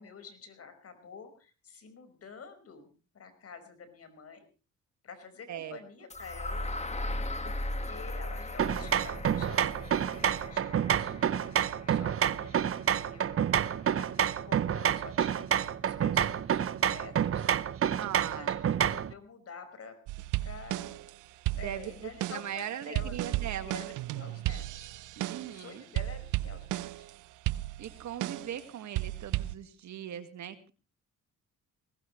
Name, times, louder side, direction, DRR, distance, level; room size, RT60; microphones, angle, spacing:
voice 1, 0.0-4.5 5.0-6.7 7.4-11.4 11.9-17.5 18.3-20.0 20.4-21.1 21.6-24.9 25.5-27.1, left 5 dB, 50° left, 9 dB, 5.2 m, -49 dB
sound 1, 6.1-14.0, left 1 dB, 20° left, 1.7 m, -39 dB
sound 2, 8.6-19.1, right 9 dB, 45° right, 0.9 m, -28 dB
voice 2, 18.0-18.6 21.6-23.9 25.2-25.8 27.8-30.7, right 10 dB, 70° right, 9 dB, 2.0 m, -39 dB
sound 3, 20.1-21.1 21.5-25.6 26.0-27.1 27.5-28.6 29.0-29.5, right 16 dB, 85° right, 0.7 m, -34 dB
20.5 x 18.5 x 3.2 m, 0.35 s
cardioid pair, 90°, 30 cm